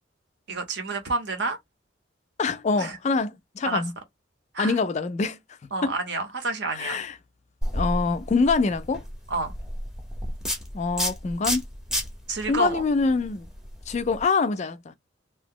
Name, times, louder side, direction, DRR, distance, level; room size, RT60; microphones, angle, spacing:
voice 1, 0.5-1.6 2.7-3.0 3.6-3.8 4.5-4.8 5.7-7.0 9.3-9.5 12.3-12.8, right 3 dB, 55° right, 0.9 m, -29 dB
voice 2, 2.4-3.9 4.6-5.4 5.8-5.9 6.7-7.1 7.7-9.0 10.7-11.6 12.5-13.5 13.9-14.9, left 4 dB, 35° left, 0.3 m, -25 dB
sound 1, 7.6-14.2, equal, 5° right, 0.7 m, -32 dB
2.8 x 2.0 x 3.6 m
head